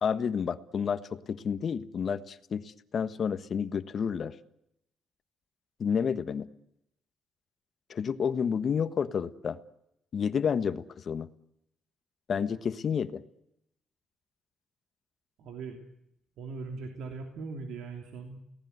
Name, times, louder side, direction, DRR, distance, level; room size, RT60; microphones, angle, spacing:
voice 1, 0.0-4.3 5.8-6.5 7.9-9.6 10.1-11.3 12.3-13.2, left 7 dB, 50° left, 12 dB, 1.4 m, -30 dB
voice 2, 15.4-15.8 16.4-18.4, right 4 dB, 80° right, 4 dB, 3.1 m, -40 dB
30.0 x 18.0 x 8.1 m, 0.81 s
cardioid pair, 90°, 0 cm